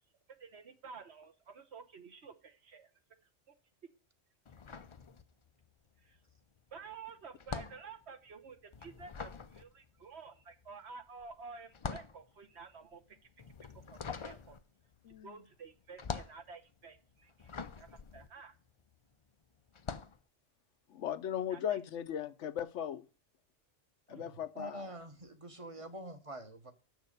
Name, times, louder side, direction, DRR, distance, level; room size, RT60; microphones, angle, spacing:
voice 1, 0.4-2.9 6.0-6.2 6.7-13.2 13.9-14.6 15.2-17.5 17.8-18.5 21.5-21.8 24.1-24.3 25.7-25.8, right 5 dB, 60° right, 1.3 m, -51 dB
sound 1, 4.5-5.7 6.0-19.1 19.7-20.2, left 5 dB, 45° left, 0.4 m, -45 dB
voice 2, 20.9-23.0 24.1-24.9, left 9 dB, 75° left, 1.0 m, -37 dB
voice 3, 24.5-26.7, right 1 dB, 30° right, 1.1 m, -45 dB
7.4 x 6.5 x 6.5 m
omnidirectional pair, 1.3 m